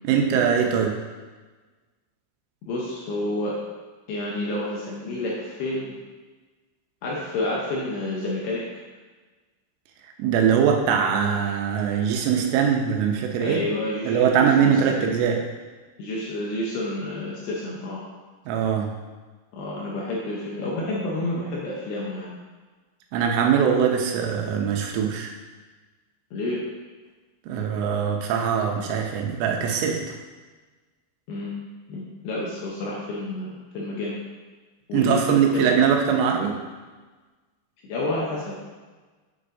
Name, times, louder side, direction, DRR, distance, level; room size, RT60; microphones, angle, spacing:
voice 1, 0.0-1.0 10.2-13.6 14.0-15.4 18.5-18.9 23.1-25.3 27.5-30.0 34.9-36.6, right 7 dB, 90° right, 2 dB, 3.3 m, -22 dB
voice 2, 2.7-3.6 4.1-6.0 7.0-8.6 13.4-15.1 16.0-18.0 19.5-22.3 26.3-26.6 31.3-31.5 31.9-34.2 34.9-35.8 37.8-38.6, left 1 dB, 75° left, -4 dB, 2.4 m, -29 dB
8.2 x 6.4 x 2.7 m, 1.3 s
omnidirectional pair, 5.5 m